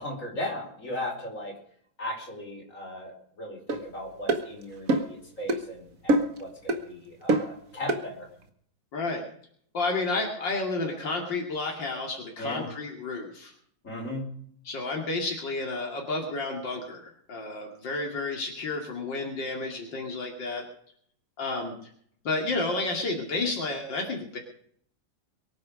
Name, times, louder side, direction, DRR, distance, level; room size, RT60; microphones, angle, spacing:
voice 1, 0.0-1.6 2.0-8.3 12.4-12.7 13.8-14.3, left 1 dB, 45° left, -1 dB, 5.5 m, -37 dB
sound 1, 3.7-3.8 4.3-4.4 4.9-5.1 5.5-5.6 6.1-6.4 6.7-6.8 7.3-7.5 7.9-8.0, right 2 dB, 50° right, 1.9 m, -24 dB
voice 2, 8.9-9.2 9.7-13.5 14.7-20.6 21.4-21.7 22.2-24.4, left 3 dB, 80° left, 0 dB, 3.2 m, -31 dB
23.0 x 9.6 x 5.2 m, 0.63 s
omnidirectional pair, 1.9 m